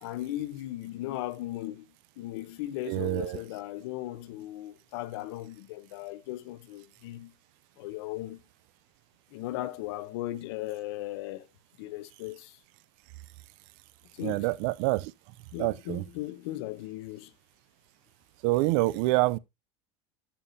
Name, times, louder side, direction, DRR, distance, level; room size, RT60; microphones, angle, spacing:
voice 1, 0.0-7.3 7.8-8.4 9.3-11.5 11.8-12.6 14.1-14.5 15.5-17.3, left 15 dB, 60° left, 0.9 m, -37 dB
voice 2, 2.9-3.4 14.2-15.1 15.6-16.0 18.4-19.4, right 20 dB, 45° right, 0.4 m, -26 dB
11.5 x 7.2 x 2.6 m
cardioid pair, 180°, 15 cm